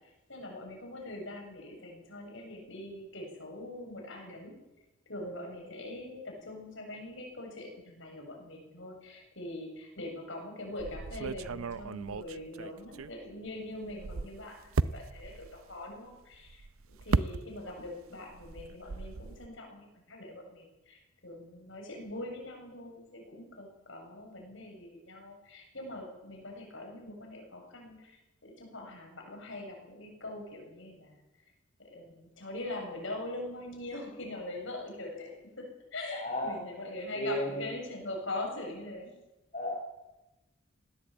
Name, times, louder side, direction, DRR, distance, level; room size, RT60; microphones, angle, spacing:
voice 1, 0.3-4.5 5.1-28.2 28.4-31.2 31.8-35.7 35.9-39.1, left 1 dB, 65° left, 1 dB, 7.3 m, -42 dB
sound 1, 10.8-13.5 13.8-17.9 18.2-19.5, right 4 dB, 80° right, 0.6 m, -35 dB
voice 2, 36.1-36.6 37.1-37.7 39.5-39.7, left 1 dB, 35° left, 0 dB, 5.8 m, -33 dB
19.5 x 17.0 x 8.6 m, 0.97 s
head